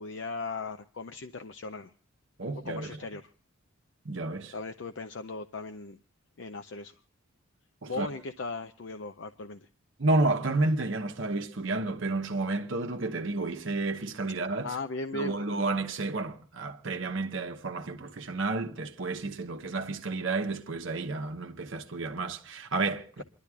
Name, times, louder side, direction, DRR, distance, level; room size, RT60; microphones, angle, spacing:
voice 1, 0.0-1.9 2.6-3.3 4.5-6.0 6.4-6.9 7.9-9.7 14.6-15.4, left 3 dB, 60° left, 0.5 m, -37 dB
voice 2, 2.4-3.0 4.0-4.5 7.8-8.1 10.0-14.7 15.1-23.2, right 2 dB, 65° right, 1.0 m, -31 dB
28.0 x 11.5 x 2.3 m
head